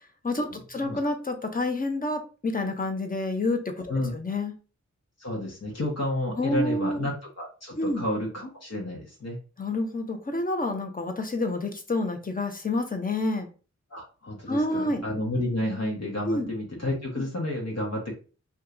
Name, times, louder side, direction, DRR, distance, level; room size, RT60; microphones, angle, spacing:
voice 1, 0.0-4.5 6.4-7.1 7.8-8.0 9.6-13.5 14.5-15.0 16.3-16.5 17.2-17.3, left 2 dB, 30° left, 5 dB, 0.8 m, -28 dB
voice 2, 5.2-9.4 13.9-18.1, left 1 dB, 60° left, -1 dB, 1.1 m, -31 dB
2.7 x 2.3 x 3.7 m, 0.35 s
cardioid pair, 50°, 29 cm